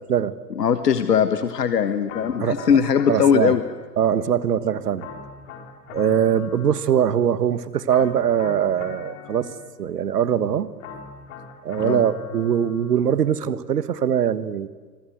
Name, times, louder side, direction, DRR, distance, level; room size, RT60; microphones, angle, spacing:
voice 1, 0.6-3.6 11.8-12.0, left 7 dB, 70° left, 10 dB, 1.5 m, -20 dB
sound 1, 2.1-4.2 5.0-7.4 7.9-10.0 10.8-13.2, left 7 dB, 50° left, 4.7 m, -41 dB
voice 2, 3.1-3.5 4.0-5.1 5.9-9.5 9.8-10.7 11.6-14.7, right 9 dB, 70° right, 15 dB, 1.6 m, -22 dB
28.5 x 24.5 x 8.0 m, 1.5 s
figure-of-eight pair, 100°, 50 cm